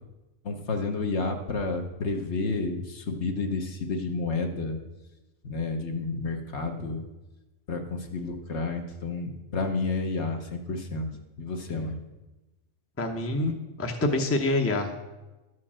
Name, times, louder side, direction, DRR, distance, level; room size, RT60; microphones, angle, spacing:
voice 1, 0.4-4.8 5.4-7.1 7.7-11.1 11.4-12.0, left 3 dB, 60° left, 4 dB, 1.3 m, -30 dB
voice 2, 13.0-14.9, left 2 dB, 15° left, 3 dB, 0.7 m, -27 dB
12.0 x 4.5 x 7.4 m, 1.1 s
omnidirectional pair, 1.3 m